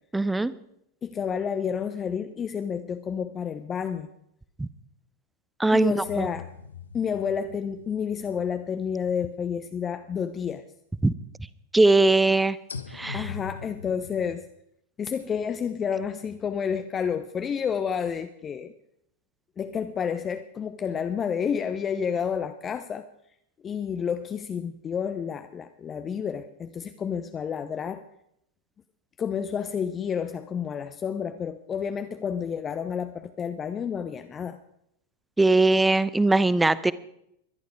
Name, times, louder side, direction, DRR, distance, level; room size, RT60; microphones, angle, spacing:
voice 1, 0.1-0.5 4.6-4.7 5.6-6.3 11.0-11.1 11.7-12.6 12.9-13.3 35.4-36.9, right 2 dB, 5° right, 17 dB, 0.7 m, -20 dB
voice 2, 1.0-4.1 5.7-6.5 6.9-10.6 13.1-14.5 15.0-18.7 19.6-23.0 23.6-28.0 29.2-34.6, left 7 dB, 25° left, 10 dB, 0.8 m, -30 dB
sound 1, 6.0-10.1 10.5-10.6 12.7-14.4, left 6 dB, 70° left, 1.1 m, -42 dB
21.5 x 11.5 x 4.9 m, 0.76 s
figure-of-eight pair, 90°, 0 cm